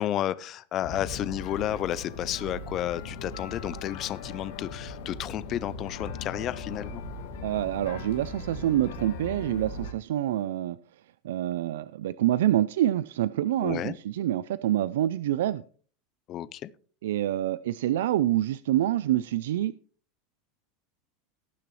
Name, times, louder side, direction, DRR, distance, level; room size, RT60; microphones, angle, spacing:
voice 1, 0.0-7.0 13.6-14.0 16.3-16.7, left 12 dB, 25° left, 18 dB, 0.4 m, -32 dB
sound 1, 0.8-9.9, left 3 dB, 75° left, 2.3 m, -39 dB
voice 2, 7.4-10.8 11.2-15.6 17.0-19.7, right 13 dB, 90° right, 17 dB, 0.4 m, -26 dB
18.0 x 6.8 x 3.1 m, 0.43 s
supercardioid pair, 175°, 0 cm